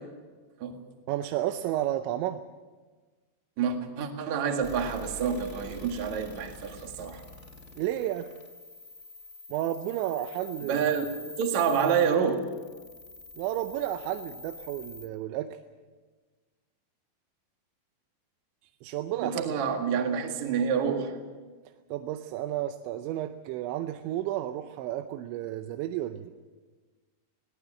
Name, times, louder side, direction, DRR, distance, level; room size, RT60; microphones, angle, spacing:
voice 1, 1.1-2.4 7.8-8.3 9.5-10.8 13.4-15.5 18.8-19.5 21.9-26.3, right 13 dB, 90° right, 8 dB, 3.1 m, -32 dB
voice 2, 3.6-7.2 10.6-11.1 11.4-12.4 19.2-21.2, right 7 dB, 50° right, 4 dB, 2.6 m, -28 dB
sound 1, 4.6-15.1, left 2 dB, 15° left, 2.4 m, -46 dB
21.5 x 18.0 x 7.6 m, 1.4 s
omnidirectional pair, 5.1 m